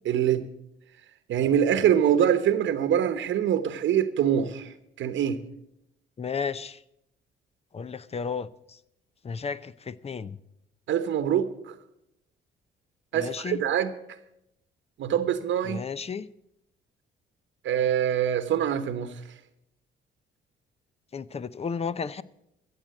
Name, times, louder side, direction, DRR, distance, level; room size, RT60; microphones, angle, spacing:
voice 1, 0.0-0.5 1.3-5.4 10.9-11.7 13.1-13.9 15.0-15.8 17.6-19.1, right 9 dB, 70° right, 1.0 m, -24 dB
voice 2, 6.2-6.8 7.7-8.8 9.2-10.4 13.1-13.6 15.6-16.3 21.1-22.2, left 6 dB, 30° left, 0.6 m, -33 dB
15.0 x 7.5 x 7.8 m
cardioid pair, 90°, 20 cm